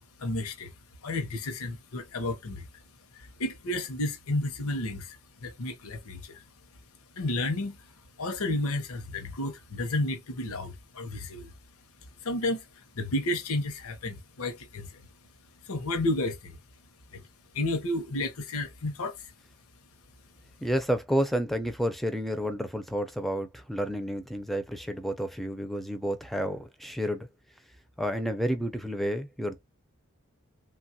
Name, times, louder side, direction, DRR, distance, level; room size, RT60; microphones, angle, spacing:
voice 1, 0.2-0.7 1.0-2.8 3.1-6.4 7.2-11.5 12.2-15.0 15.6-16.6 17.1-17.3 17.5-19.3, left 2 dB, 80° left, 0.7 m, -32 dB
voice 2, 20.6-27.3 28.0-29.6, equal, ahead, 0.3 m, -30 dB
3.1 x 2.3 x 2.7 m
head